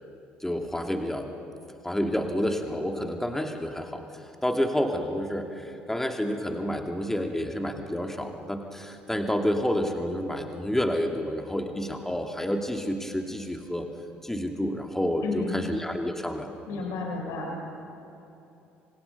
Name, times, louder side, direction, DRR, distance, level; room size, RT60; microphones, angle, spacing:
voice 1, 0.4-1.3 1.8-4.0 4.4-13.9 14.2-16.8, equal, 5° left, 4 dB, 2.7 m, -29 dB
voice 2, 15.2-15.7 16.7-17.6, left 3 dB, 55° left, 0 dB, 5.3 m, -32 dB
28.5 x 25.0 x 5.6 m, 2.8 s
figure-of-eight pair, 55°, 6 cm